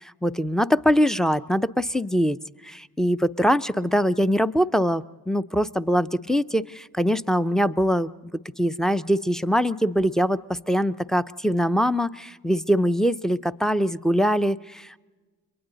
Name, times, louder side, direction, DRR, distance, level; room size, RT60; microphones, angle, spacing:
voice 1, 0.2-2.4 2.6-15.0, equal, ahead, 14 dB, 0.6 m, -23 dB
29.5 x 23.0 x 4.0 m, 1.3 s
hypercardioid pair, 40°, 47 cm